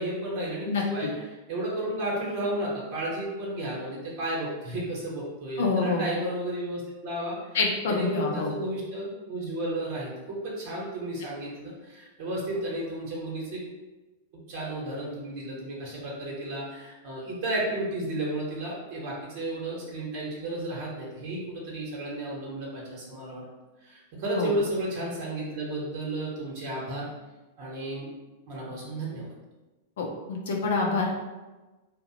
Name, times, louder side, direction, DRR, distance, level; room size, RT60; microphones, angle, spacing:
voice 1, 0.0-7.6 7.9-13.6 14.5-23.4 23.8-27.1 27.6-28.1 28.5-29.3, right 1 dB, 55° right, -5 dB, 0.9 m, -33 dB
voice 2, 0.7-1.1 5.6-6.0 7.5-8.5 24.3-24.5 30.0-31.1, left 4 dB, 70° left, 0 dB, 0.5 m, -27 dB
2.8 x 2.0 x 2.7 m, 1.1 s
hypercardioid pair, 100°, 0 cm